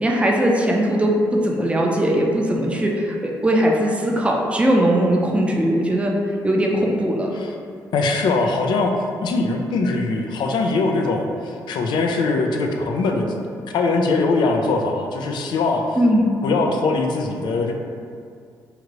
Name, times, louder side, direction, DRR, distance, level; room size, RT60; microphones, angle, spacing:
voice 1, 0.0-6.2 6.4-7.3 16.0-16.3, right 1 dB, 15° right, -1 dB, 0.5 m, -19 dB
voice 2, 7.9-13.3 13.7-16.0 16.4-17.7, left 3 dB, 70° left, 2 dB, 0.4 m, -21 dB
2.9 x 2.5 x 3.0 m, 2.3 s
supercardioid pair, 55°, 8 cm